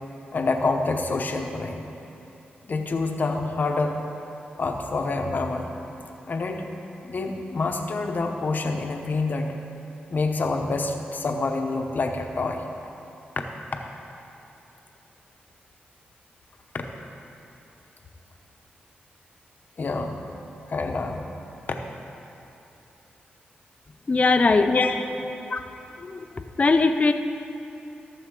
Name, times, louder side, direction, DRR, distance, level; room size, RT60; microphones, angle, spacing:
voice 1, 0.3-1.8 2.7-4.0 4.6-5.7 6.3-6.7 7.1-9.5 10.1-12.6 16.7-16.8 19.8-20.2 20.7-21.2 24.6-25.0, left 3 dB, 55° left, 3 dB, 0.9 m, -27 dB
voice 2, 24.1-24.8 25.5-25.6 26.0-27.1, left 3 dB, 40° left, 7 dB, 0.5 m, -21 dB
15.0 x 7.0 x 3.8 m, 2.8 s
cardioid pair, 70°, 4 cm